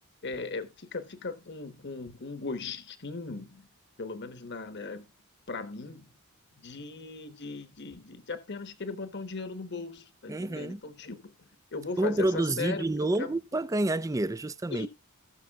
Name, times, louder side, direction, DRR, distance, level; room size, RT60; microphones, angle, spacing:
voice 1, 0.2-3.7 4.0-5.1 5.5-6.1 6.6-11.3 11.7-13.3 14.7-14.9, left 3 dB, 50° left, 1.1 m, -38 dB
voice 2, 10.3-10.8 12.0-14.9, right 2 dB, 15° right, 0.4 m, -28 dB
18.5 x 6.3 x 2.4 m
head